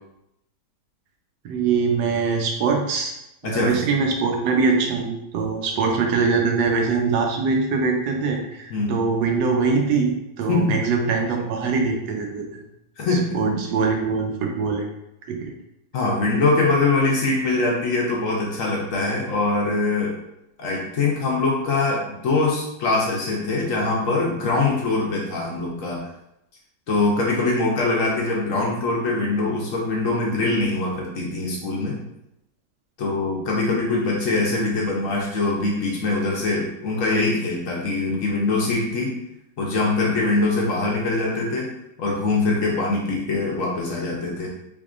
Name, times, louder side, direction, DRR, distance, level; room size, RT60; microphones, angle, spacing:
voice 1, 1.4-3.1 3.4-12.6 13.3-14.9 15.3-15.5, right 4 dB, 80° right, 2 dB, 1.3 m, -23 dB
voice 2, 3.4-3.7 8.7-9.0 10.5-10.8 13.0-13.5 15.9-20.1 20.6-26.0 26.9-32.0 33.0-39.1 39.6-41.7 42.0-44.5, left 3 dB, 60° left, -2 dB, 0.9 m, -23 dB
3.6 x 3.5 x 2.4 m, 0.83 s
omnidirectional pair, 1.9 m